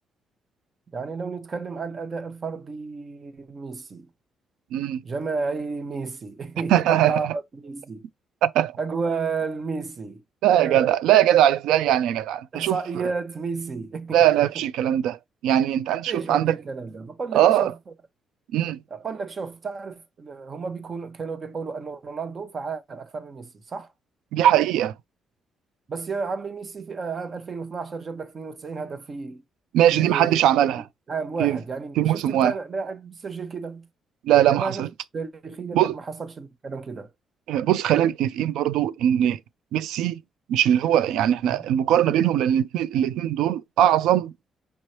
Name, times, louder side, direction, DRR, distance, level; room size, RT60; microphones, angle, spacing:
voice 1, 0.9-4.1 5.0-8.0 8.8-10.2 10.5-10.9 12.5-14.3 16.1-17.7 18.9-23.9 25.9-29.4 29.9-30.4 30.8-33.9 34.5-37.1 41.5-41.6, right 4 dB, 40° right, 1.0 m, -32 dB
voice 2, 4.7-5.0 6.7-7.2 8.4-8.7 10.4-12.8 14.1-16.5 17.3-17.7 18.5-18.8 24.3-24.9 29.7-30.8 31.4-31.6 32.0-32.5 34.2-34.9 35.7-35.9 37.5-39.4 39.7-40.2 40.5-44.3, right 11 dB, 90° right, 0.3 m, -20 dB
5.3 x 3.1 x 2.9 m
cardioid pair, 90°, 0 cm